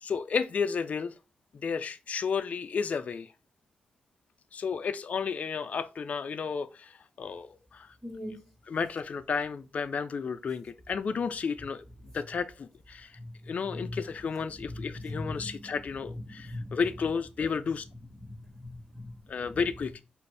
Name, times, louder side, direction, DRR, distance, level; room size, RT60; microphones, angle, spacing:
voice 1, 0.0-1.1 1.5-3.3 4.5-7.9 8.7-13.2 13.5-17.9 19.3-20.0, left 5 dB, 50° left, 0.3 m, -32 dB
voice 2, 8.0-8.4 13.2-13.3 13.7-14.0 14.9-15.6 16.3-16.8 18.2-19.2, left 1 dB, 10° right, 1.2 m, -40 dB
4.7 x 2.5 x 3.3 m
cardioid pair, 60°, 3 cm